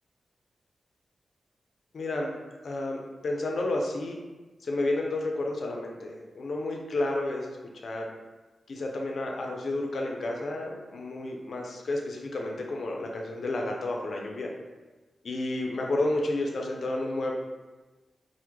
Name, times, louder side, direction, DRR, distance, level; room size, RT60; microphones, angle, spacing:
voice 1, 1.9-2.4 2.6-4.2 4.6-7.6 7.8-8.1 8.7-14.5 15.2-17.3, left 2 dB, 65° left, 0 dB, 0.4 m, -31 dB
3.0 x 2.1 x 3.4 m, 1.2 s
wide cardioid pair, 115°, 0 cm